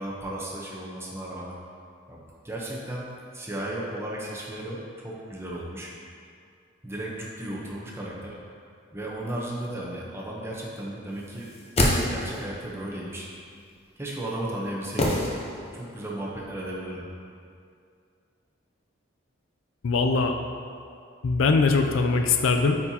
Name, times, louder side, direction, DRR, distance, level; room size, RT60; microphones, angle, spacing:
voice 1, 0.0-1.6 2.1-3.1 3.3-5.9 6.8-8.4 8.9-11.6 12.1-13.3 14.0-15.2 15.7-17.1, right 1 dB, 15° right, -4 dB, 0.8 m, -35 dB
sound 1, 11.4-12.6 15.0-15.9 16.1-16.2, left 1 dB, 30° left, 0.7 m, -26 dB
voice 2, 19.8-20.4 21.2-22.8, left 4 dB, 75° left, 5 dB, 0.4 m, -21 dB
8.6 x 4.3 x 2.8 m, 2.3 s
head